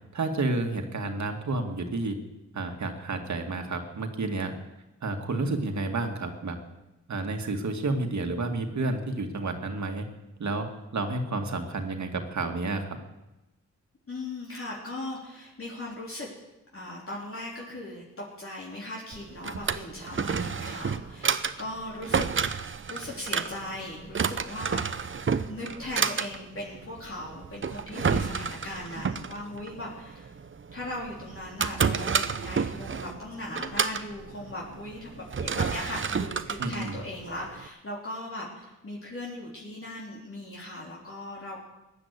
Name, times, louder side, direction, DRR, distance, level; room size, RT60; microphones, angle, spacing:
voice 1, 0.1-2.2 2.5-4.5 5.0-6.6 7.1-10.1 10.4-13.0 28.0-28.3 36.6-37.0, right 2 dB, 65° right, 4 dB, 2.1 m, -30 dB
voice 2, 14.1-16.3 16.7-22.5 22.9-24.8 25.5-30.3 30.7-41.6, left 1 dB, 45° left, -4 dB, 3.6 m, -38 dB
Drawer open or close, 19.1-37.7, right 6 dB, 40° right, 0.8 m, -31 dB
15.5 x 10.0 x 8.3 m, 1.0 s
cardioid pair, 65°, 31 cm